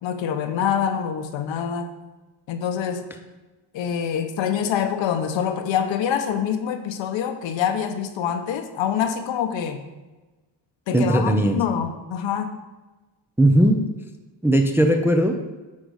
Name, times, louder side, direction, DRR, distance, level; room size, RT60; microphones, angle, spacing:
voice 1, 0.0-1.9 2.5-3.0 3.7-9.8 10.9-12.5, left 8 dB, 65° left, 7 dB, 1.0 m, -25 dB
voice 2, 10.9-11.6 13.4-13.8 14.4-15.4, right 1 dB, 5° right, 4 dB, 0.4 m, -18 dB
9.5 x 3.9 x 6.4 m, 1.2 s
cardioid pair, 125°, 48 cm